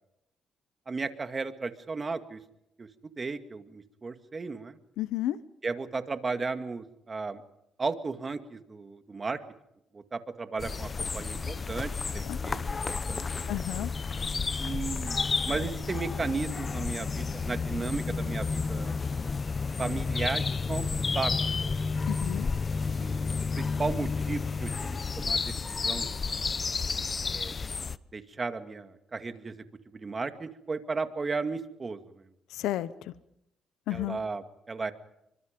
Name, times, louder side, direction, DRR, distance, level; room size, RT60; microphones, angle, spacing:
voice 1, 0.9-2.4 2.8-2.9 3.2-4.8 5.6-7.4 7.8-9.4 9.9-13.6 14.6-19.0 19.8-20.8 21.1-21.3 21.7-21.9 22.8-26.4 27.2-27.5 28.1-29.5 29.9-32.3 33.9-34.9, right 4 dB, 30° right, 8 dB, 2.2 m, -35 dB
voice 2, 5.0-5.4 12.3-12.4 13.5-13.9 22.1-22.5 32.5-33.1 33.9-34.2, left 14 dB, 90° left, 15 dB, 0.9 m, -32 dB
sound 1, 10.6-28.0, left 4 dB, 35° left, 0.9 m, -31 dB
28.5 x 24.5 x 5.3 m, 0.81 s
cardioid pair, 90°, 0 cm